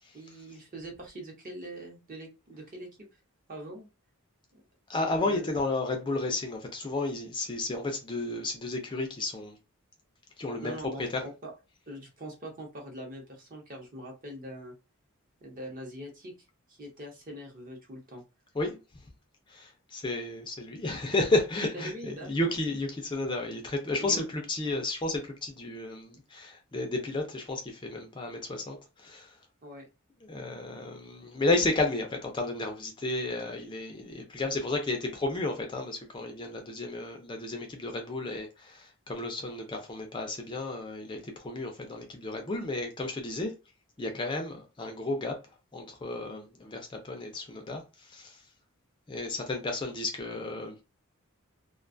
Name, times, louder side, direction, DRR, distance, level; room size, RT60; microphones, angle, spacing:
voice 1, 0.1-3.1 3.5-3.9 4.5-4.6 5.2-5.6 10.6-11.5 11.9-14.7 15.4-16.3 16.7-18.2 21.7-22.5 24.0-24.3 29.6-29.9, right 1 dB, 40° right, 0.8 m, -43 dB
voice 2, 4.9-9.6 10.4-11.2 18.5-18.8 19.5-29.4 30.2-43.5 44.0-45.4 45.7-48.5 49.1-50.8, left 2 dB, 20° left, 0.4 m, -32 dB
2.4 x 2.3 x 2.5 m
head